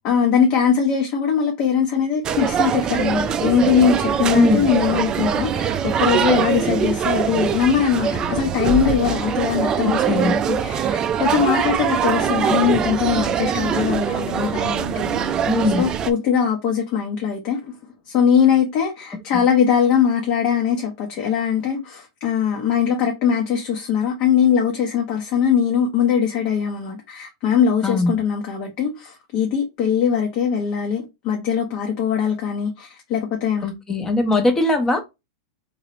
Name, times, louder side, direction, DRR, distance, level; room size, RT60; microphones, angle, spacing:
voice 1, 0.0-15.3 15.7-17.7 18.1-33.7, left 7 dB, 45° left, 0.9 m, -21 dB
sound 1, 2.2-16.1, right 8 dB, 25° right, 0.3 m, -22 dB
voice 2, 4.3-4.7 9.8-10.3 15.5-15.9 19.1-19.4 27.8-28.2 33.6-35.0, left 2 dB, 15° left, 0.8 m, -20 dB
3.1 x 2.8 x 3.0 m
hypercardioid pair, 130°, 3 cm